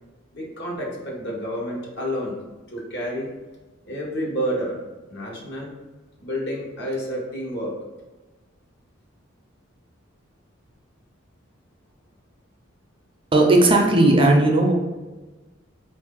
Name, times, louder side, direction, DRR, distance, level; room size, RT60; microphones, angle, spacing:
voice 1, 0.3-2.4 2.7-3.3 3.8-4.8 5.1-5.7 6.2-7.7, equal, 60° left, -3 dB, 1.1 m, -29 dB
voice 2, 13.3-14.7, right 2 dB, 25° right, 1 dB, 0.5 m, -16 dB
4.3 x 2.6 x 3.7 m, 1.2 s
head